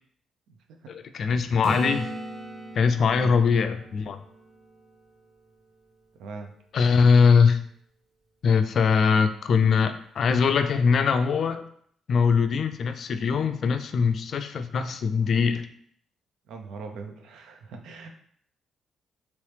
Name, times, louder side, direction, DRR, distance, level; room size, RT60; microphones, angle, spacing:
voice 1, 0.9-2.1 2.8-4.2 6.7-7.6 8.4-11.6 12.1-15.7, left 5 dB, 55° left, 9 dB, 0.3 m, -22 dB
Acoustic guitar / Strum, 1.6-5.4 10.2-10.3, right 1 dB, 20° right, 0.9 m, -38 dB
voice 2, 3.1-3.4 6.2-6.5 16.5-18.1, right 4 dB, 80° right, 4 dB, 0.5 m, -40 dB
3.1 x 3.0 x 3.2 m, 0.63 s
cardioid pair, 90°, 0 cm